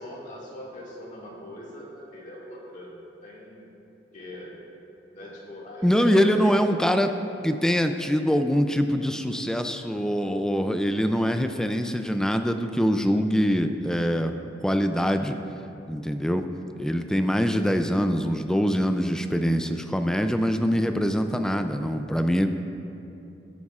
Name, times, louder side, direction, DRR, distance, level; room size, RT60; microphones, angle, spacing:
voice 1, 0.0-3.7 4.1-4.5 5.1-6.6 6.9-7.0, left 1 dB, 45° left, -5 dB, 2.0 m, -40 dB
voice 2, 5.8-7.1 7.4-14.4 14.6-15.4 15.9-16.4 16.8-22.5, equal, 5° left, 7 dB, 0.3 m, -24 dB
13.0 x 9.5 x 2.4 m, 2.8 s
head